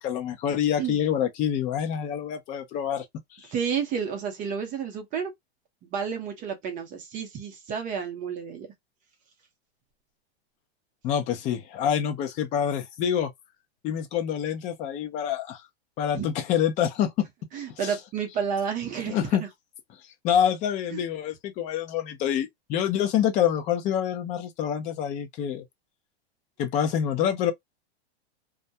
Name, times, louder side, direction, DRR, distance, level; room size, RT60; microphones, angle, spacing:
voice 1, 0.0-3.0 3.4-3.5 11.0-13.3 13.8-15.6 16.0-17.3 17.8-17.9 19.1-19.4 20.2-25.6 26.6-27.5, left 9 dB, 25° left, 0.4 m, -26 dB
voice 2, 3.5-5.3 5.8-8.7 16.1-16.3 17.5-19.3 20.9-21.0, right 7 dB, 25° right, 0.6 m, -31 dB
2.3 x 2.1 x 2.6 m
supercardioid pair, 145°, 33 cm